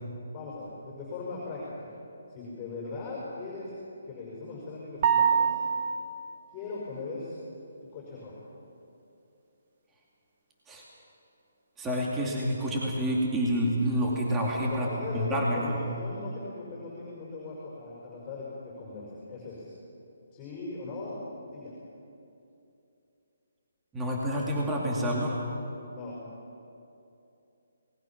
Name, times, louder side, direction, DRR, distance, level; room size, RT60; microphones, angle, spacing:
voice 1, 0.3-1.9 2.3-3.7 4.0-5.5 6.5-7.3 7.9-8.4 14.6-19.7 20.3-21.2 21.5-21.7 25.9-26.2, left 3 dB, 20° left, -4 dB, 5.3 m, -39 dB
sound 1, 5.0-6.1, right 7 dB, 35° right, 2.5 m, -24 dB
voice 2, 11.8-15.8 23.9-25.4, equal, 10° right, -3 dB, 2.4 m, -28 dB
27.0 x 19.5 x 6.0 m, 2.7 s
hypercardioid pair, 165°, 0 cm